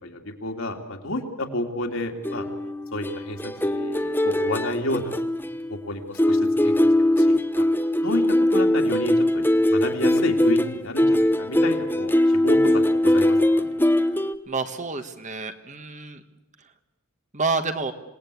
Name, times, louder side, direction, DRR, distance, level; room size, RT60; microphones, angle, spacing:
voice 1, 0.0-2.5 2.9-5.1 5.7-6.7 7.1-7.7 8.0-13.7, left 1 dB, 65° left, 3 dB, 2.9 m, -31 dB
sound 1, 2.2-5.9 6.2-14.3, left 1 dB, 10° left, 0.9 m, -21 dB
voice 2, 14.5-16.2 17.3-17.9, right 3 dB, 35° right, 8 dB, 1.4 m, -28 dB
27.0 x 19.0 x 8.5 m, 0.96 s
head